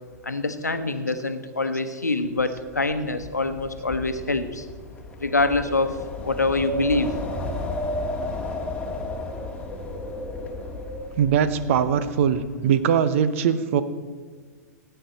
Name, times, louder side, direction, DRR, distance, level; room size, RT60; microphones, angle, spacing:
voice 1, 0.2-4.6 5.2-5.9 6.2-7.1, left 2 dB, 85° left, 9 dB, 1.0 m, -25 dB
Wind, 2.4-12.5, left 1 dB, 15° left, 1.6 m, -33 dB
voice 2, 11.2-13.8, right 8 dB, 50° right, 12 dB, 0.8 m, -21 dB
16.0 x 9.1 x 4.2 m, 1.6 s
figure-of-eight pair, 105°, 9 cm